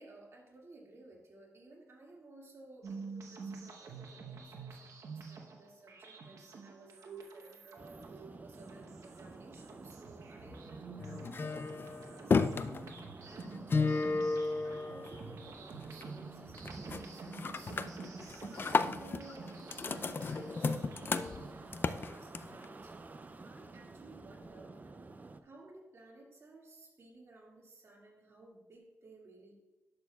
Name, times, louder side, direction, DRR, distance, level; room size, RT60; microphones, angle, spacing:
voice 1, 0.0-14.1 14.6-17.7 18.6-23.0 23.4-25.0 25.4-29.5, right 2 dB, 50° right, -2 dB, 2.2 m, -56 dB
sound 1, 2.8-21.7, right 4 dB, 80° right, 1.0 m, -49 dB
sound 2, 7.8-25.4, right 3 dB, 30° right, 0.5 m, -51 dB
sound 3, 11.0-15.5 15.8-16.3 16.6-17.0 17.3-22.6, left 4 dB, 40° left, 0.4 m, -34 dB
11.0 x 6.6 x 2.3 m, 1.1 s
wide cardioid pair, 110°, 6 cm